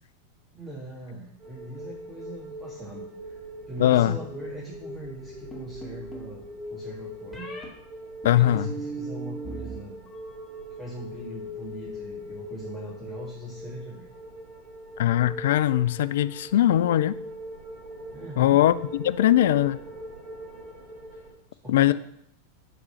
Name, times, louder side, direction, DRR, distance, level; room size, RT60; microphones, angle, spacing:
voice 1, 0.5-3.4 3.7-6.4 6.7-7.5 8.3-10.0 10.8-14.1 18.1-18.6 21.6-21.9, right 1 dB, 15° right, -4 dB, 1.9 m, -40 dB
sound 1, 1.4-21.3, equal, 35° right, 3.4 m, -41 dB
voice 2, 3.8-4.2 8.2-8.7 15.0-17.1 18.4-18.7 19.0-19.8 21.7-21.9, left 13 dB, 55° left, 15 dB, 0.3 m, -20 dB
sound 2, 5.5-6.3 7.3-7.7 8.2-9.8 10.1-10.6, right 4 dB, 15° left, 2.0 m, -38 dB
8.4 x 3.7 x 6.4 m, 0.72 s
figure-of-eight pair, 90°, 0 cm